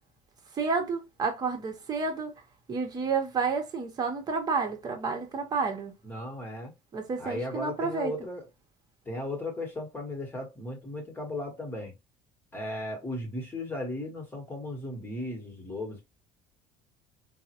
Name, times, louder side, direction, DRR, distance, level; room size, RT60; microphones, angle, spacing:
voice 1, 0.6-2.3 2.7-5.9 6.9-8.1, right 4 dB, 30° right, 0.9 m, -30 dB
voice 2, 6.0-6.7 7.2-8.4 9.0-11.9 12.5-16.0, left 1 dB, 15° left, 1.1 m, -36 dB
3.6 x 2.1 x 2.9 m
cardioid pair, 130°, 13 cm